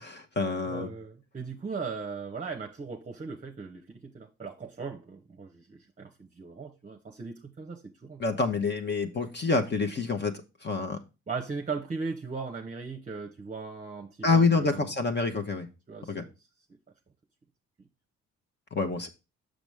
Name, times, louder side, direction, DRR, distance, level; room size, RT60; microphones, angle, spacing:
voice 1, 0.0-0.9 8.2-11.0 14.2-15.7 16.1-16.2 18.7-19.1, left 4 dB, 35° left, 1.0 m, -27 dB
voice 2, 0.7-8.2 11.3-14.9 15.9-16.3, right 4 dB, 25° right, 0.8 m, -38 dB
6.5 x 6.0 x 3.4 m
cardioid pair, 90°, 30 cm